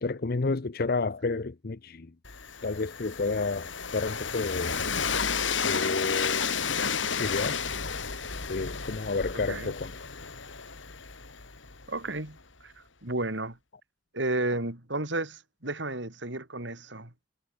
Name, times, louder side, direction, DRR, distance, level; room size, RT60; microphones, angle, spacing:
voice 1, 0.0-2.1 2.6-4.8 5.6-6.5 7.2-7.6 8.5-9.9, left 3 dB, 55° left, 0.7 m, -30 dB
Train, 2.2-12.1, left 6 dB, 90° left, 3.3 m, -32 dB
voice 2, 11.9-12.4 12.6-12.7 13.0-13.6 14.1-17.3, right 2 dB, 70° right, 4.1 m, -32 dB
head